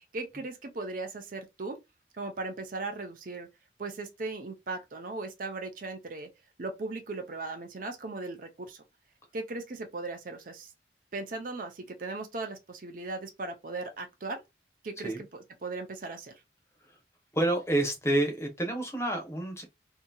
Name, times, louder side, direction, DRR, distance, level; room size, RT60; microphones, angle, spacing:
voice 1, 0.0-1.8 2.1-3.5 3.8-6.3 6.6-8.8 9.3-10.7 11.1-14.4 14.8-16.3, right 3 dB, 50° right, 0.5 m, -38 dB
voice 2, 17.3-19.6, right 1 dB, 15° left, 0.8 m, -28 dB
2.7 x 2.7 x 2.2 m
head